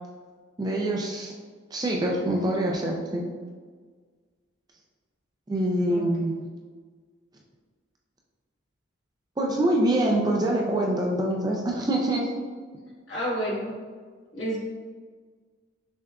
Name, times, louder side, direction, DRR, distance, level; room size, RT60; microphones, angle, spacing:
voice 1, 0.6-1.3 1.7-3.2 5.5-6.4 9.4-12.3, right 1 dB, 20° right, -1 dB, 0.3 m, -25 dB
voice 2, 13.1-13.7 14.3-14.6, equal, 65° left, -8 dB, 1.5 m, -29 dB
6.1 x 2.4 x 2.3 m, 1.5 s
head